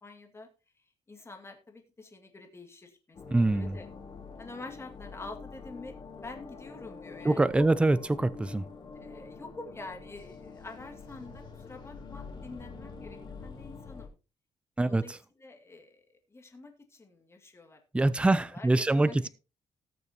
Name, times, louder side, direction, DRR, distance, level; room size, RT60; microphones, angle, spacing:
voice 1, 0.0-0.5 1.1-3.9 4.4-8.0 8.9-14.1 14.9-16.0 16.3-19.3, left 3 dB, 20° left, 2.2 m, -47 dB
sound 1, 3.1-14.1, left 4 dB, 40° left, 2.8 m, -46 dB
voice 2, 3.3-3.8 7.2-8.6 14.8-15.0 17.9-19.3, right 2 dB, 10° right, 0.5 m, -24 dB
19.0 x 6.8 x 2.9 m
cardioid pair, 145°, 12 cm